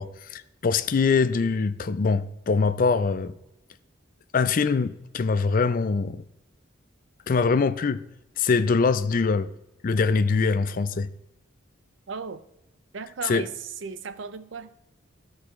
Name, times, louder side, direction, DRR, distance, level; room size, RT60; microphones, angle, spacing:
voice 1, 0.0-3.3 4.3-6.2 7.3-8.0 8.4-9.5 9.8-11.1 13.3-13.4, left 4 dB, 45° left, 0.4 m, -23 dB
voice 2, 12.1-12.4 12.9-14.7, right 5 dB, 70° right, 0.6 m, -36 dB
14.0 x 4.9 x 3.6 m
head